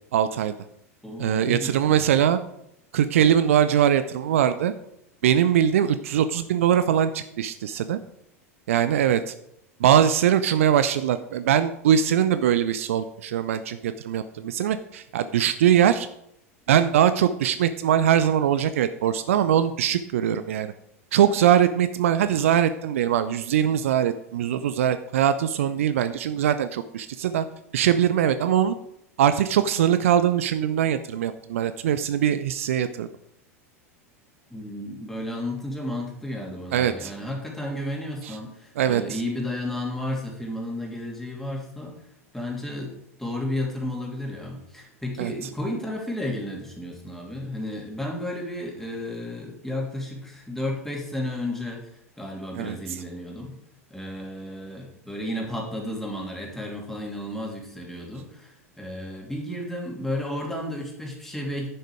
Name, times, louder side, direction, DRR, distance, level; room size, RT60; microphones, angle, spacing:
voice 1, 0.1-0.5 1.2-2.4 2.9-4.7 5.2-8.0 8.7-9.3 9.8-16.1 16.7-20.7 21.1-27.5 27.7-28.7 29.2-33.1 36.7-37.1 38.2-38.3 38.8-39.0 45.2-45.3 52.5-52.8, right 9 dB, 60° right, 12 dB, 0.5 m, -22 dB
voice 2, 1.0-2.1 34.5-41.9 42.3-42.9 43.2-53.6 53.9-61.7, left 1 dB, 5° left, -1 dB, 2.8 m, -32 dB
10.5 x 6.5 x 4.9 m, 0.77 s
figure-of-eight pair, 85°, 8 cm